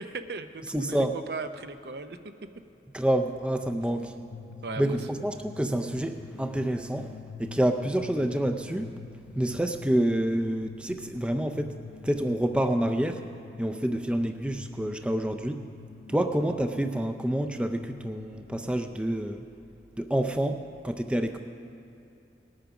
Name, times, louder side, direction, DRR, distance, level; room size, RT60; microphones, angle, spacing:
voice 1, 0.0-2.2 4.6-5.0, right 4 dB, 65° right, 9 dB, 0.6 m, -37 dB
voice 2, 0.7-1.1 2.9-4.1 4.8-7.1 7.4-8.9 9.4-11.7 12.0-13.2 13.6-15.6 16.1-19.4 20.0-21.4, right 1 dB, 5° right, 6 dB, 0.4 m, -28 dB
sound 1, 3.6-18.9, left 5 dB, 80° left, 0.5 m, -46 dB
19.0 x 8.8 x 5.9 m, 2.8 s
head